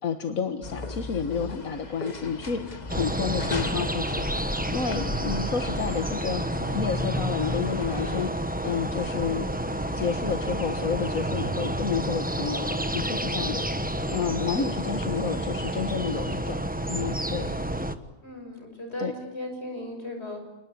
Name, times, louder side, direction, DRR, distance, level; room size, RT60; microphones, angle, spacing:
voice 1, 0.0-9.5 9.9-16.6 16.9-17.5 19.0-19.1, left 6 dB, 80° left, 7 dB, 1.9 m, -30 dB
sound 1, 0.6-8.3, left 2 dB, 30° left, 1.6 m, -36 dB
sound 2, 2.9-18.0, right 1 dB, 5° right, 1.1 m, -30 dB
voice 2, 18.2-20.4, left 1 dB, 50° left, 4 dB, 6.7 m, -37 dB
29.5 x 20.0 x 9.7 m, 1.0 s
omnidirectional pair, 1.4 m